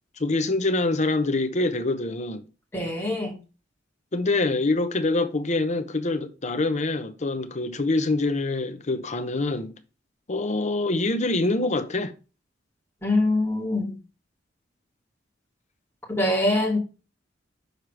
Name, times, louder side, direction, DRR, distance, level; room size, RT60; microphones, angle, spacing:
voice 1, 0.2-2.4 4.1-9.8 10.3-12.1, left 2 dB, 35° left, 0.8 m, -25 dB
voice 2, 2.7-3.4 13.0-14.0 16.1-16.8, left 1 dB, 10° left, 2.6 m, -24 dB
6.6 x 4.6 x 4.7 m
head